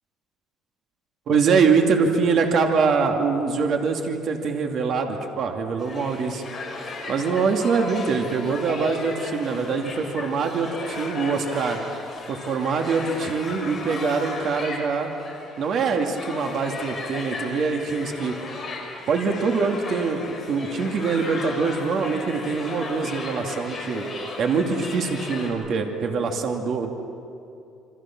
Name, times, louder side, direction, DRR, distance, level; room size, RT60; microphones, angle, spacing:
voice 1, 1.3-6.4 7.1-11.8 12.3-15.1 15.6-18.3 19.1-24.1 24.4-26.9, right 5 dB, 50° right, 3 dB, 2.4 m, -24 dB
sound 1, 5.8-25.5, left 3 dB, 20° left, 5.7 m, -35 dB
27.5 x 25.0 x 6.0 m, 2.7 s
cardioid pair, 130°, 0 cm